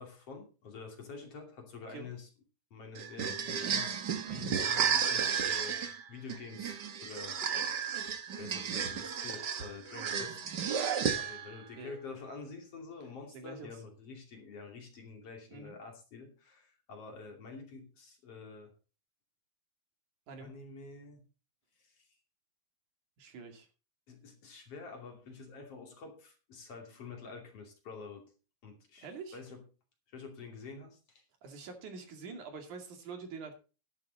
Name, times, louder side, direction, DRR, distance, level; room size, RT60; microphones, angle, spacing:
voice 1, 0.0-2.3 2.7-6.8 7.0-7.4 8.4-10.4 11.2-18.7 20.4-21.2 21.8-22.0 24.1-28.3 28.6-29.6 30.1-31.0, left 4 dB, 50° left, 3 dB, 3.6 m, -48 dB
sound 1, 2.9-11.6, right 7 dB, 50° right, 1.4 m, -33 dB
voice 2, 13.3-13.7 15.5-15.8 20.3-20.5 23.2-23.7 29.0-29.4 31.4-33.5, right 5 dB, 80° right, 5 dB, 3.9 m, -45 dB
11.5 x 11.5 x 4.1 m, 0.33 s
omnidirectional pair, 3.5 m